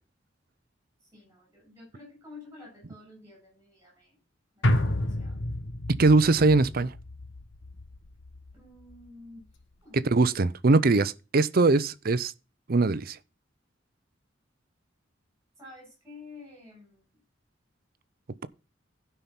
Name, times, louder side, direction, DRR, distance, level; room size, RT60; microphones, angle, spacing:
voice 1, 1.1-4.2 4.6-5.4 8.5-9.4 9.8-10.0 10.3-10.4 15.6-17.2, left 3 dB, 15° right, 7.7 m, -50 dB
sound 1, 4.6-9.1 9.4-9.5, left 1 dB, 70° left, 1.3 m, -31 dB
voice 2, 6.0-6.9 9.9-12.3 12.7-13.2, right 3 dB, 50° right, 0.6 m, -21 dB
12.5 x 5.7 x 5.8 m
head